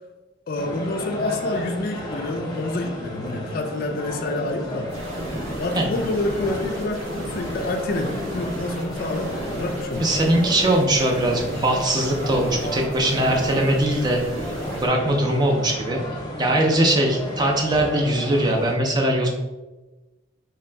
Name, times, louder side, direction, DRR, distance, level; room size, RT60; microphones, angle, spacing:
voice 1, 0.5-4.9 5.6-10.1, left 2 dB, 45° left, 5 dB, 0.3 m, -27 dB
sound 1, 0.6-18.8, equal, 20° left, 0.7 m, -33 dB
sound 2, 4.9-14.9, right 1 dB, 85° right, 0.7 m, -35 dB
voice 2, 10.0-14.2 14.8-16.0 16.4-19.3, right 1 dB, 20° right, 0 dB, 0.4 m, -21 dB
3.3 x 2.8 x 3.3 m, 1.1 s
head